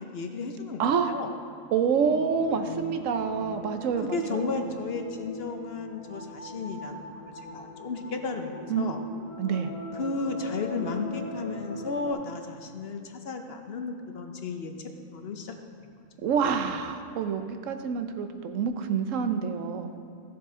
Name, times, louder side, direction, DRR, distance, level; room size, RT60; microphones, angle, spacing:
voice 1, 0.0-1.3 4.0-7.1 7.5-9.0 9.9-14.7 15.1-15.5, left 4 dB, 55° left, 5 dB, 0.9 m, -34 dB
voice 2, 0.8-1.1 1.7-4.7 8.7-9.0 9.4-9.7 16.2-20.0, right 6 dB, 85° right, 8 dB, 1.1 m, -27 dB
sound 1, 2.0-12.1, left 1 dB, 80° left, 1.8 m, -40 dB
15.0 x 7.0 x 3.7 m, 2.4 s
omnidirectional pair, 1.3 m